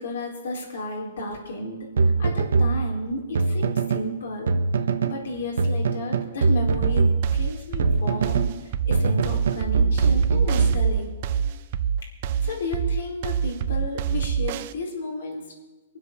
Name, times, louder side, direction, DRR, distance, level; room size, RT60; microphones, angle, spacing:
voice 1, 0.0-4.6 5.0-8.5 8.9-11.1 12.4-15.4, left 2 dB, 85° left, -1 dB, 4.4 m, -33 dB
sound 1, 2.0-4.1 4.5-5.2 5.6-8.6 8.9-11.3, right 4 dB, 85° right, 1.1 m, -22 dB
sound 2, 6.7-14.7, right 8 dB, 45° right, 0.6 m, -26 dB
22.0 x 7.9 x 6.8 m, 1.2 s
hypercardioid pair, 155°, 0 cm